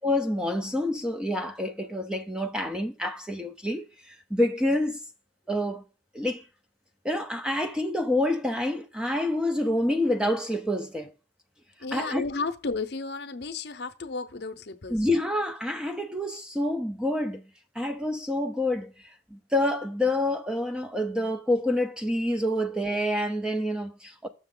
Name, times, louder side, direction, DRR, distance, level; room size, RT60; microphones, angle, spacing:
voice 1, 0.0-5.0 5.5-5.8 6.1-6.5 7.0-11.1 11.9-12.2 14.9-17.4 17.8-24.3, left 1 dB, 5° right, 0.4 m, -27 dB
voice 2, 11.8-15.0 22.5-22.6, left 4 dB, 60° left, 0.7 m, -33 dB
7.0 x 6.5 x 3.7 m
head